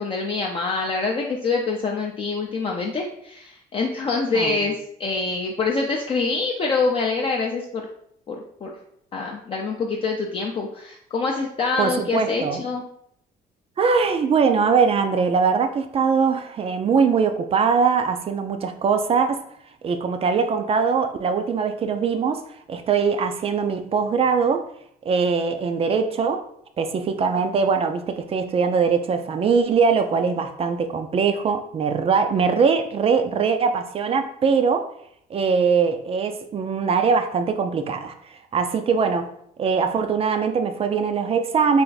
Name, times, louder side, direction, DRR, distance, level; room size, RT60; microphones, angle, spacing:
voice 1, 0.0-4.7 5.0-7.8 8.3-8.7 9.1-12.8, left 4 dB, 35° left, -1 dB, 0.5 m, -25 dB
voice 2, 11.8-12.6 13.8-19.4 19.8-22.4 22.7-24.6 25.1-26.4 26.8-34.9 35.3-38.1 38.5-39.3 39.6-41.8, right 5 dB, 35° right, 7 dB, 0.4 m, -21 dB
3.4 x 2.5 x 3.9 m, 0.70 s
cardioid pair, 110°, 17 cm